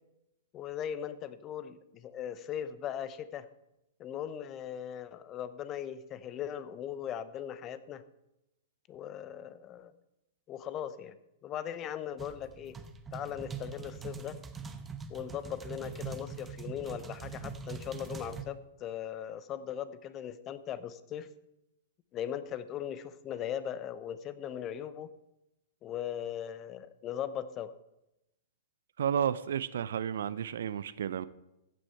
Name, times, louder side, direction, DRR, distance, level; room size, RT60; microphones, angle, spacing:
voice 1, 0.5-3.5 4.0-8.0 8.9-9.9 10.5-11.2 11.4-12.8 13.1-14.4 15.1-21.3 22.1-25.1 25.8-27.7, left 9 dB, 30° left, 0.7 m, -39 dB
sound 1, 12.2-18.4, right 6 dB, 15° right, 0.9 m, -43 dB
voice 2, 29.0-31.3, right 8 dB, 75° right, 0.5 m, -32 dB
15.0 x 6.2 x 4.6 m
hypercardioid pair, 120°, 0 cm